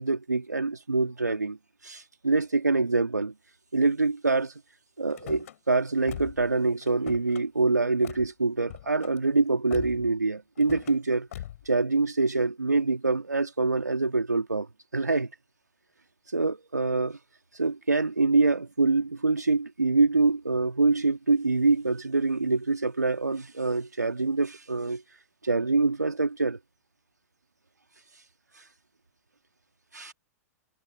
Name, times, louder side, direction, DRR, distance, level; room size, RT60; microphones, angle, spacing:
voice 1, 0.0-1.6 1.8-3.3 3.7-4.5 5.0-11.3 11.7-14.7 14.9-15.3 16.3-17.2 17.6-25.0 25.4-26.6 29.9-30.1, right 3 dB, 90° right, 2.2 m, -25 dB
Car / Slam, 5.1-5.6 6.0-6.5 6.8-7.4 8.0-8.3 8.7-9.2 9.7-10.1 10.6-11.0 11.3-11.7, left 12 dB, 60° left, 3.1 m, -41 dB
figure-of-eight pair, 105°, 9 cm